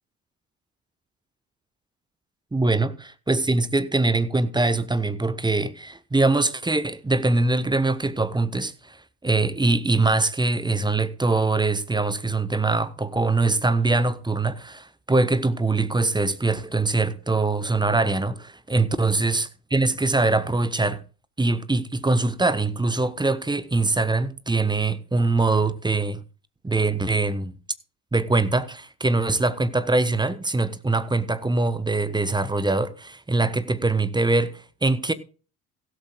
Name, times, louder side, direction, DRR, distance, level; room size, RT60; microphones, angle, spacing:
voice 1, 2.5-2.9 3.3-21.0 21.4-26.2 26.6-27.5 28.1-35.1, right 3 dB, 10° right, 1.1 m, -23 dB
16.0 x 13.0 x 2.3 m
figure-of-eight pair, 55°, 46 cm